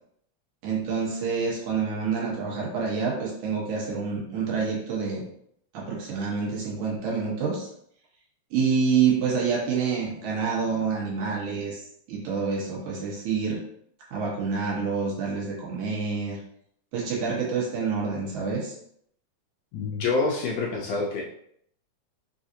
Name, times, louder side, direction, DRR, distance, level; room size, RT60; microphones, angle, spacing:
voice 1, 0.6-5.2 5.7-7.7 8.5-11.8 12.1-13.6 14.1-16.4 16.9-18.7, right 5 dB, 85° right, -4 dB, 2.6 m, -27 dB
voice 2, 19.7-21.2, left 3 dB, 75° left, -2 dB, 1.6 m, -27 dB
5.5 x 2.6 x 2.7 m, 0.68 s
omnidirectional pair, 3.4 m